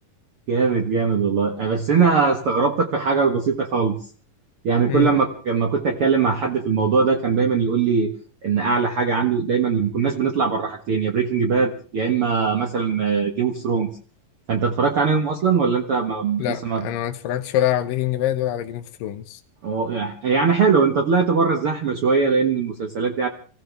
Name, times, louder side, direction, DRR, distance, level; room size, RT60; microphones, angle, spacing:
voice 1, 0.5-4.0 4.6-8.1 8.4-13.9 14.5-16.9 19.6-23.3, right 5 dB, 50° right, 1.9 m, -21 dB
voice 2, 16.4-19.4, left 12 dB, 80° left, 2.6 m, -25 dB
26.0 x 16.0 x 3.4 m
omnidirectional pair, 3.9 m